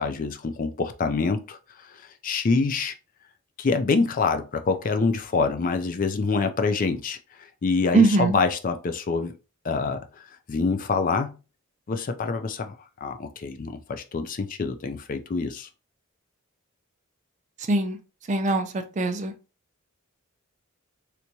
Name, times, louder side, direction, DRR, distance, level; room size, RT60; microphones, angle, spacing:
voice 1, 0.0-3.0 3.6-9.3 9.6-11.4 11.9-15.7, left 4 dB, 40° left, 0.4 m, -26 dB
voice 2, 7.9-8.4 17.7-18.0 18.3-19.3, right 3 dB, 35° right, 0.4 m, -22 dB
3.4 x 3.0 x 2.7 m
head